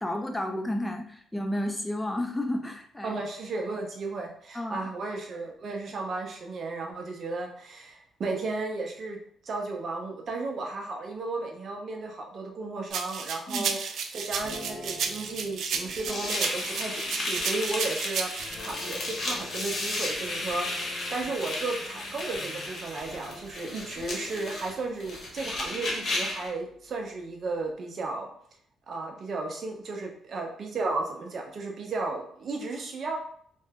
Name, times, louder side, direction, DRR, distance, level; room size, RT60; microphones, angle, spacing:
voice 1, 0.0-3.2 4.5-4.9 13.5-13.7, left 1 dB, 10° left, 4 dB, 0.5 m, -31 dB
voice 2, 3.0-9.2 9.4-18.3 18.6-28.3 28.9-33.2, right 3 dB, 50° right, 1 dB, 0.7 m, -34 dB
sound 1, 12.9-18.5, right 6 dB, 70° right, 0.3 m, -32 dB
sound 2, 14.3-24.9 25.3-27.7, left 3 dB, 75° left, 1.0 m, -48 dB
sound 3, 16.1-26.5, left 2 dB, 50° left, 1.0 m, -34 dB
2.6 x 2.2 x 3.4 m, 0.62 s
cardioid pair, 90°, 0 cm